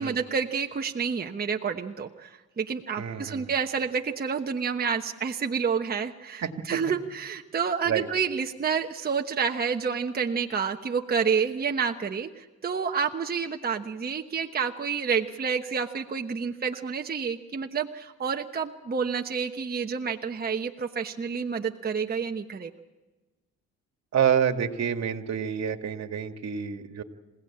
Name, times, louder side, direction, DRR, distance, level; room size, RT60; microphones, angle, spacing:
voice 1, 0.0-22.7, right 6 dB, 30° right, 4 dB, 1.1 m, -29 dB
voice 2, 3.0-3.5 6.4-6.8 7.9-8.1 24.1-27.0, right 8 dB, 60° right, 6 dB, 2.0 m, -28 dB
27.0 x 17.0 x 8.7 m, 1.2 s
cardioid pair, 90°, 30 cm